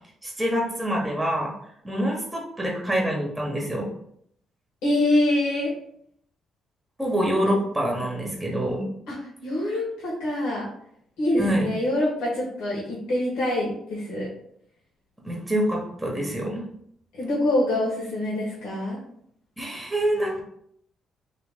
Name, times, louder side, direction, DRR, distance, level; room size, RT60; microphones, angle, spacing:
voice 1, 0.2-1.5 1.8-3.9 7.0-8.9 11.4-11.7 15.2-16.6 19.6-20.4, equal, 10° right, -1 dB, 1.0 m, -26 dB
voice 2, 4.8-5.7 9.1-9.2 9.4-10.6 11.2-14.3 17.2-19.0, left 1 dB, 90° left, -6 dB, 1.1 m, -25 dB
3.1 x 2.8 x 3.5 m, 0.70 s
cardioid pair, 90°, 0 cm